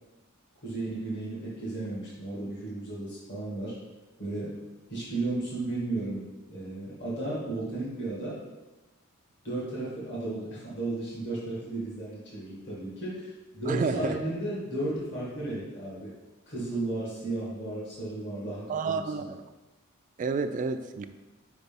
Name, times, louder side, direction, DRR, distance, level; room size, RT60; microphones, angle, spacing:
voice 1, 0.6-3.8 4.2-4.6 4.9-8.4 9.4-16.1 16.5-19.3, right 2 dB, 55° left, -7 dB, 2.0 m, -34 dB
voice 2, 13.7-14.2 18.7-19.4 20.2-21.1, right 4 dB, 35° right, 8 dB, 0.3 m, -30 dB
5.0 x 4.1 x 5.3 m, 1.1 s
head